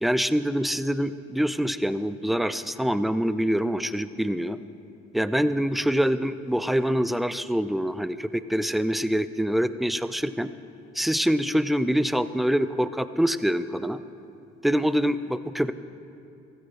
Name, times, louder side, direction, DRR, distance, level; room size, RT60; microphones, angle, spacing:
voice 1, 0.0-4.6 5.1-10.5 11.0-14.0 14.6-15.7, equal, ahead, 14 dB, 0.5 m, -25 dB
16.0 x 14.0 x 4.3 m, 2.7 s
hypercardioid pair, 50°, 36 cm